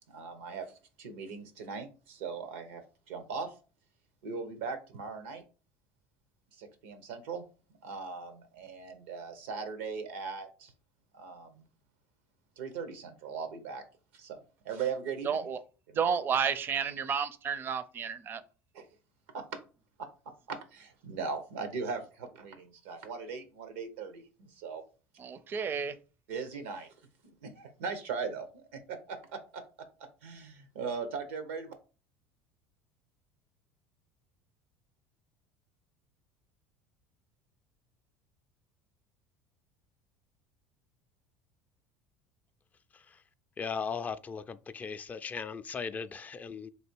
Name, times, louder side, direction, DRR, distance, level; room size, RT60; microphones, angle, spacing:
voice 1, 0.1-0.7 1.0-2.8 3.1-3.5 4.2-5.4 6.6-7.4 7.8-10.7 11.1-11.6 12.6-13.8 14.1-14.4 14.6-15.4 18.7-18.8 19.3-19.4 20.5-24.8 26.3-26.9 27.2-29.6 30.2-31.7, right 5 dB, 90° right, 0.9 m, -39 dB
voice 2, 15.2-15.6 15.9-18.4 25.2-26.0, right 7 dB, 35° right, 0.5 m, -31 dB
voice 3, 43.6-46.7, left 5 dB, 25° left, 0.3 m, -37 dB
3.3 x 2.7 x 4.5 m
supercardioid pair, 100°, 6 cm